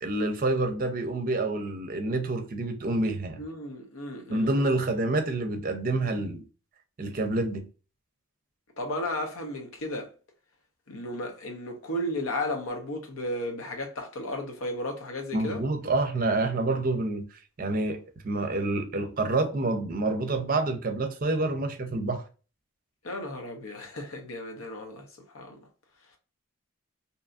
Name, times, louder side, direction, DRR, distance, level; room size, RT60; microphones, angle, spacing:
voice 1, 0.0-3.4 4.3-6.4 7.0-7.6 15.3-17.3 17.6-22.2, right 2 dB, 40° right, 0.5 m, -28 dB
voice 2, 3.4-4.5 8.8-10.1 10.9-15.6 23.0-25.0 25.3-25.6, left 1 dB, 90° left, 0.8 m, -34 dB
2.7 x 2.5 x 2.3 m
head